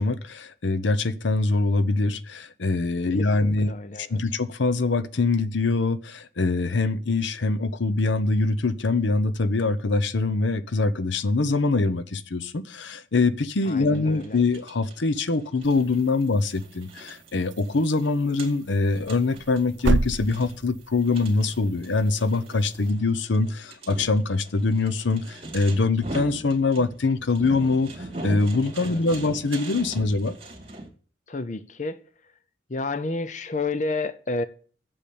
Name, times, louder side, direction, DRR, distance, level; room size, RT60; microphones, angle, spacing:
voice 1, 0.0-3.7 4.0-27.9 28.2-30.3, left 3 dB, 75° left, 0.7 m, -24 dB
voice 2, 3.2-4.2 13.6-14.4 28.8-29.0 31.3-32.0 32.7-34.4, left 3 dB, 40° left, 0.7 m, -30 dB
sound 1, 13.7-30.9, right 1 dB, 30° right, 2.4 m, -41 dB
sound 2, 15.6-22.9, right 3 dB, 80° right, 0.6 m, -33 dB
8.4 x 7.3 x 8.5 m
head